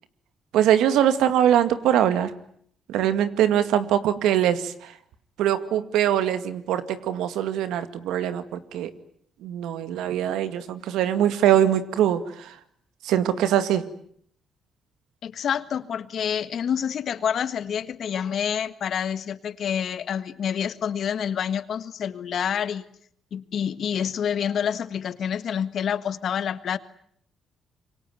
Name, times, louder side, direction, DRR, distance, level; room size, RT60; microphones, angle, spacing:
voice 1, 0.5-2.3 2.9-4.7 5.4-8.4 8.7-8.9 9.4-12.2 13.0-13.8, right 10 dB, 90° right, 11 dB, 2.1 m, -22 dB
voice 2, 15.2-22.8 23.3-26.8, left 8 dB, 60° left, 13 dB, 1.6 m, -28 dB
26.5 x 24.0 x 9.3 m, 0.65 s
cardioid pair, 90°, 0 cm